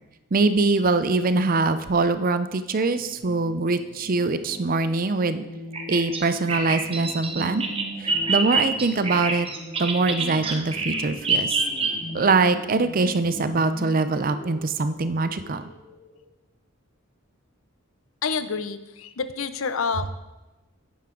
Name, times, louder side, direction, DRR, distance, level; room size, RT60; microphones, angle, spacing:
voice 1, 0.3-5.4 5.9-7.6 8.0-9.5 9.8-11.6 12.1-15.7, right 3 dB, 45° right, 11 dB, 0.5 m, -23 dB
sound 1, 3.0-16.2, equal, 35° left, 2.3 m, -40 dB
Bird vocalization bird call bird song, 5.7-12.3, right 3 dB, 25° right, 1.0 m, -26 dB
voice 2, 18.2-20.1, left 5 dB, 70° left, 11 dB, 0.6 m, -28 dB
10.5 x 9.4 x 3.8 m, 1.0 s
head